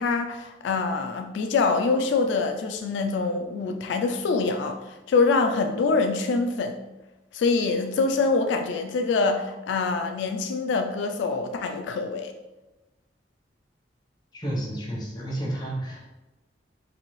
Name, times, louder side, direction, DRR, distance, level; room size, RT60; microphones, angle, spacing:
voice 1, 0.0-6.8 7.3-12.3, left 4 dB, 80° left, 5 dB, 0.3 m, -25 dB
voice 2, 14.3-16.1, right 1 dB, 25° left, -3 dB, 0.9 m, -31 dB
4.0 x 2.6 x 3.1 m, 1.1 s
head